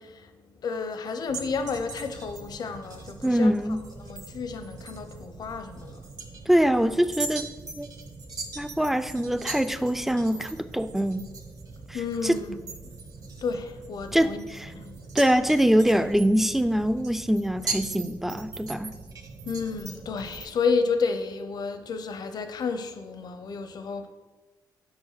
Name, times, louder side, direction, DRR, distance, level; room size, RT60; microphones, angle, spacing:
voice 1, 0.0-3.5 4.0-6.4 11.9-13.0 13.4-14.4 14.7-15.1 19.4-24.1, left 5 dB, 60° left, 0.7 m, -31 dB
sound 1, 1.3-20.5, right 4 dB, 50° right, 1.0 m, -40 dB
voice 2, 3.2-3.8 6.5-7.5 7.8-7.9 8.6-11.2 12.2-12.3 14.1-14.7 15.1-18.9, equal, 5° right, 0.4 m, -23 dB
4.8 x 4.7 x 5.8 m
cardioid pair, 80°, 8 cm